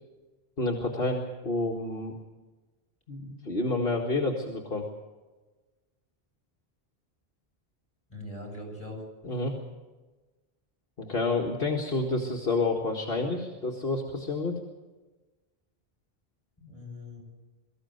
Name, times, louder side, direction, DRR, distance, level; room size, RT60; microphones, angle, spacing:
voice 1, 0.6-2.1 3.1-4.9 9.2-9.6 11.0-14.6, left 2 dB, 65° left, -1 dB, 2.1 m, -29 dB
voice 2, 8.1-9.0 16.6-17.2, left 1 dB, 35° left, -1 dB, 8.0 m, -41 dB
23.5 x 14.5 x 8.0 m, 1.2 s
omnidirectional pair, 1.0 m